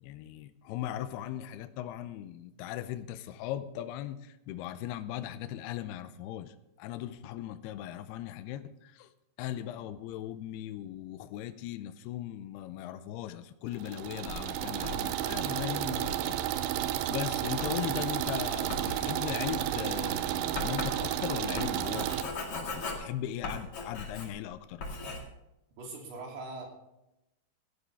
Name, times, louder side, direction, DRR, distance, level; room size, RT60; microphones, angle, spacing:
voice 1, 0.0-9.1 9.4-24.8, left 12 dB, 80° left, 10 dB, 2.4 m, -38 dB
sound 1, 13.7-22.2, right 13 dB, 80° right, 2.6 m, -32 dB
Writing, 14.3-24.5 24.8-25.2, left 3 dB, 40° left, 2.5 m, -41 dB
voice 2, 25.8-26.7, right 3 dB, 65° right, 0 dB, 4.9 m, -41 dB
17.0 x 12.5 x 3.5 m, 0.90 s
omnidirectional pair, 5.2 m